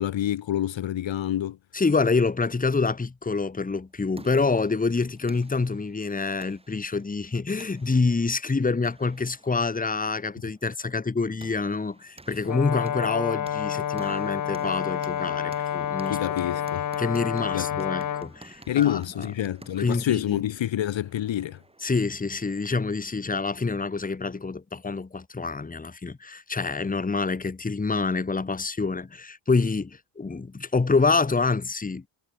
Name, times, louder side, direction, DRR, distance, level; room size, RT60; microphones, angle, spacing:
voice 1, 0.0-1.6 16.1-16.9 17.5-17.7 18.7-21.6, left 12 dB, 65° left, 0.9 m, -27 dB
voice 2, 1.7-16.2 17.0-19.0 19.8-20.4 21.8-32.0, left 4 dB, 15° left, 1.3 m, -26 dB
sound 1, 3.8-22.9, right 2 dB, 10° right, 2.8 m, -52 dB
Brass instrument, 12.4-18.3, left 10 dB, 40° left, 0.5 m, -29 dB
wide cardioid pair, 175°, 48 cm